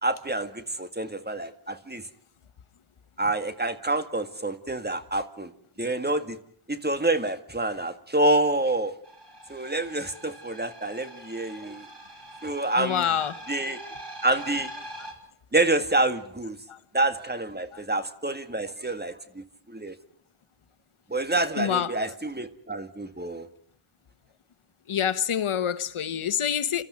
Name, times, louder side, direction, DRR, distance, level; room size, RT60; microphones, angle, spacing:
voice 1, 0.0-2.1 3.2-5.5 5.8-6.4 6.7-8.9 9.5-11.9 12.4-13.0 13.5-13.8 14.2-14.7 15.5-16.6 16.9-19.9 21.1-23.5, right 2 dB, 20° right, 2.0 m, -27 dB
sound 1, 9.0-15.1, right 1 dB, 55° right, 4.7 m, -43 dB
voice 2, 12.8-13.4 16.7-16.8 17.7-17.8 21.6-21.9 24.9-26.8, left 9 dB, 75° left, 1.2 m, -27 dB
29.0 x 13.0 x 9.6 m
cardioid pair, 65°, 50 cm